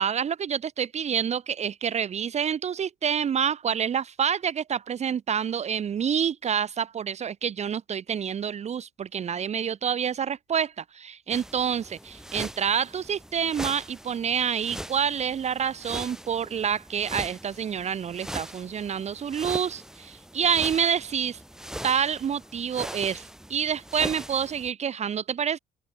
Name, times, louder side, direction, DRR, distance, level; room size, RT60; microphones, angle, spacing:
voice 1, 0.0-21.4 21.8-25.6, right 8 dB, 40° right, 1.4 m, -28 dB
sound 1, 11.3-24.7, equal, 5° right, 7.1 m, -41 dB
cardioid pair, 110°, 17 cm